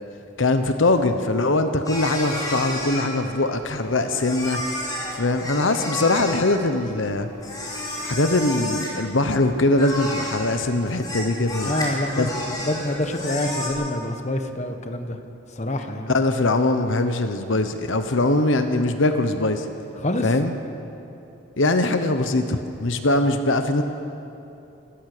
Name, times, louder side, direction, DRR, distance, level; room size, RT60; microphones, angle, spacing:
voice 1, 0.4-4.6 5.1-7.3 8.0-11.7 12.2-12.3 16.1-19.7 20.2-20.5 21.6-23.8, left 2 dB, 65° left, 7 dB, 1.0 m, -22 dB
sound 1, 1.9-13.7, left 1 dB, 20° left, 4.4 m, -32 dB
voice 2, 11.6-15.2 15.6-16.1 20.0-20.3, left 1 dB, 35° left, 6 dB, 1.2 m, -26 dB
27.0 x 14.5 x 6.7 m, 2.8 s
head